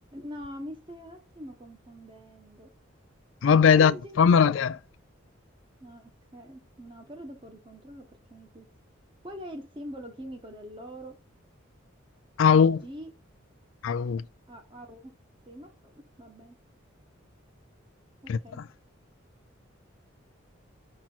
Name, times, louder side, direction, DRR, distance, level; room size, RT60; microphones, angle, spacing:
voice 1, 0.1-2.7 3.7-4.4 5.8-8.7 9.2-11.2 12.5-13.1 14.5-15.1 15.5-16.5 18.2-18.6, equal, 25° right, 1.4 m, -44 dB
voice 2, 3.4-4.8 12.4-12.8 13.8-14.2 18.3-18.4, left 6 dB, 70° left, 0.4 m, -20 dB
6.0 x 5.7 x 4.0 m
head